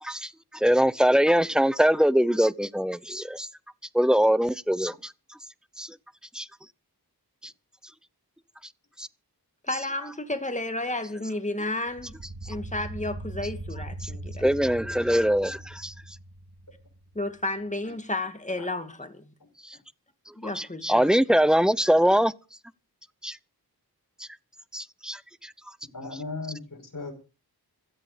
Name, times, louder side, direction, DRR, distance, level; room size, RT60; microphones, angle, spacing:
voice 1, 0.0-3.5 3.9-5.1 5.8-6.0 6.3-6.5 7.4-7.5 9.0-9.1 12.4-12.5 14.0-14.1 14.4-15.9 19.6-19.8 20.3-22.3 23.2-23.4 24.2-24.3 24.7-25.5, equal, ahead, 0.8 m, -23 dB
voice 2, 9.6-12.1 12.5-14.4 17.1-19.3 20.4-21.1, left 2 dB, 20° left, 2.3 m, -32 dB
sound 1, 11.9-17.1, right 1 dB, 65° right, 2.2 m, -40 dB
voice 3, 25.9-27.1, left 3 dB, 55° left, 6.1 m, -37 dB
16.5 x 13.0 x 5.1 m
wide cardioid pair, 55°, 39 cm